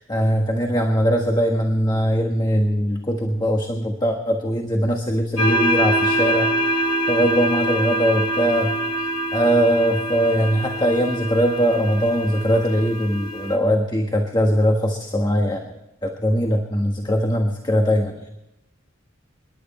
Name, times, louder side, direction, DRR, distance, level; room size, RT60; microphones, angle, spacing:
voice 1, 0.0-6.8 7.1-15.7 16.0-18.2, equal, 20° left, 2 dB, 1.4 m, -21 dB
sound 1, 5.4-13.6, right 1 dB, 85° left, 3.5 m, -24 dB
26.5 x 11.5 x 4.3 m, 0.93 s
head